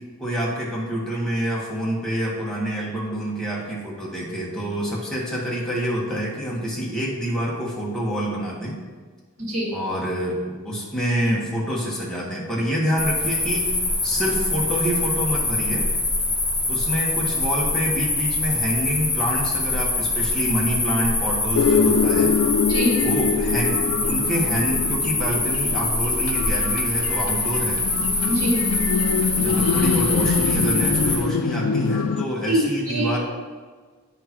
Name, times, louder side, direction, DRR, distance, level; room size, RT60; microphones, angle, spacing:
voice 1, 0.2-8.8 9.7-13.7 14.0-15.9 16.7-22.3 23.0-27.8 29.4-33.2, equal, 5° left, -6 dB, 1.5 m, -27 dB
voice 2, 9.4-9.7 22.7-23.0 28.3-28.6 32.5-33.2, right 1 dB, 80° right, -3 dB, 2.1 m, -23 dB
sound 1, 13.0-31.2, left 2 dB, 30° left, 2.0 m, -24 dB
sound 2, 21.5-32.3, left 5 dB, 90° left, 0.4 m, -24 dB
8.9 x 6.5 x 3.0 m, 1.4 s
head